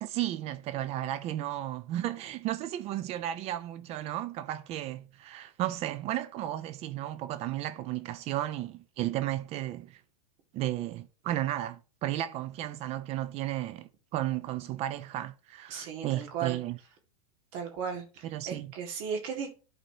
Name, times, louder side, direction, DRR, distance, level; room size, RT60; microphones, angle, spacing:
voice 1, 0.0-10.0 10.5-16.8 18.2-18.7, right 13 dB, 35° right, 0.4 m, -34 dB
voice 2, 15.7-16.6 17.5-19.5, right 7 dB, 55° right, 2.0 m, -36 dB
11.5 x 4.1 x 2.8 m
hypercardioid pair, 125°, 19 cm